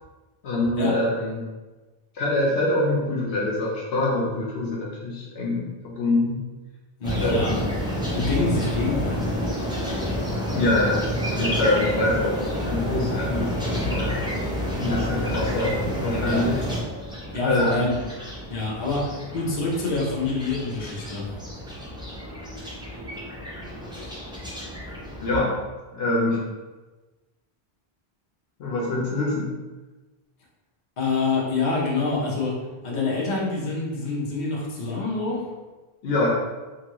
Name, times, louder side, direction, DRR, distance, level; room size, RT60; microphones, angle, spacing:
voice 1, 0.4-1.4 2.1-6.4 7.2-7.5 10.5-14.2 14.8-16.6 17.4-17.9 25.2-25.6 25.9-26.5 28.6-29.5 36.0-36.3, left 2 dB, 75° left, -3 dB, 0.9 m, -25 dB
voice 2, 7.0-7.6 8.1-9.4 16.2-16.5 17.3-17.9 18.5-21.3 31.0-32.6 32.8-35.5, left 3 dB, 50° left, -4 dB, 0.8 m, -26 dB
sound 1, 7.0-25.4, equal, 5° right, 0.4 m, -29 dB
3.0 x 2.5 x 2.9 m, 1.2 s
omnidirectional pair, 1.1 m